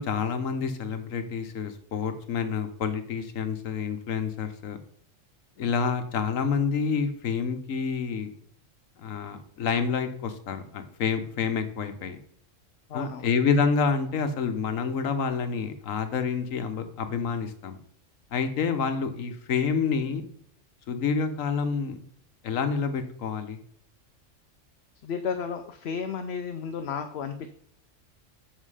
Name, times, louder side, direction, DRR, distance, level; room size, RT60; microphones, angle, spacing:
voice 1, 0.0-4.8 5.6-8.3 9.0-12.2 12.9-17.8 18.3-20.2 20.9-22.0 22.4-23.6, left 5 dB, 85° left, 8 dB, 1.3 m, -28 dB
voice 2, 12.9-13.3 18.9-19.0 25.0-27.5, left 6 dB, 60° left, 7 dB, 0.8 m, -33 dB
7.5 x 6.2 x 4.9 m, 0.64 s
omnidirectional pair, 1.3 m